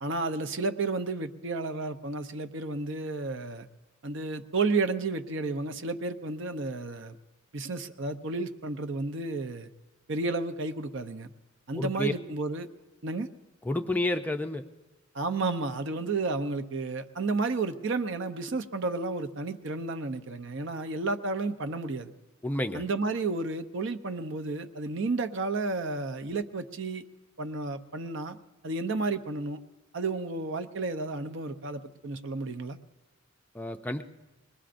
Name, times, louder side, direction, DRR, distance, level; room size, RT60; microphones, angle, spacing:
voice 1, 0.0-3.7 4.0-7.2 7.5-9.7 10.1-11.3 11.7-12.7 13.0-13.3 15.1-22.1 22.7-27.0 27.4-28.4 28.6-29.6 29.9-32.8, right 3 dB, 60° right, 9 dB, 0.6 m, -32 dB
voice 2, 11.8-12.1 13.6-14.6 22.4-22.8 33.5-34.0, left 1 dB, 10° left, 6 dB, 0.4 m, -30 dB
23.5 x 20.0 x 2.5 m, 1.1 s
head